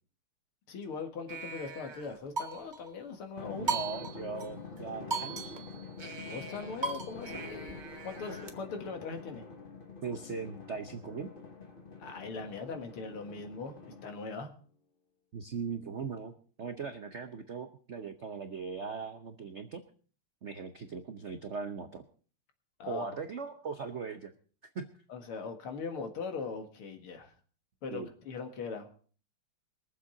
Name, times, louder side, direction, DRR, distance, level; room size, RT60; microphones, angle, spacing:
voice 1, 0.7-3.7 6.2-9.4 12.0-13.8 14.0-14.5 22.8-23.1 25.1-27.3 27.8-29.0, left 4 dB, 75° left, 6 dB, 2.6 m, -40 dB
sound 1, 1.3-2.9 3.7-4.5 4.8-4.9 5.1-8.5, right 3 dB, 25° right, 1.1 m, -38 dB
Drum, 3.4-14.4, left 4 dB, 25° left, 1.5 m, -47 dB
voice 2, 3.5-5.5 10.0-11.3 15.3-19.8 20.4-22.0 22.9-24.3 24.7-24.9 27.9-28.1, right 5 dB, 65° right, 7 dB, 0.7 m, -39 dB
22.0 x 7.5 x 5.0 m, 0.42 s
omnidirectional pair, 2.4 m